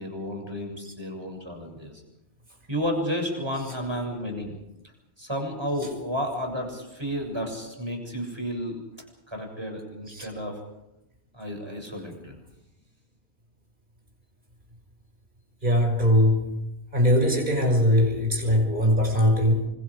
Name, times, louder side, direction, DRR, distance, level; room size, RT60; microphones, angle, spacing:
voice 1, 0.0-1.9 2.7-4.6 5.2-8.8 9.3-10.6 11.3-12.4, equal, 25° right, 2 dB, 7.2 m, -32 dB
voice 2, 15.6-16.6 16.9-19.7, left 1 dB, 50° right, 2 dB, 5.9 m, -21 dB
29.5 x 25.0 x 5.0 m, 0.87 s
omnidirectional pair, 1.1 m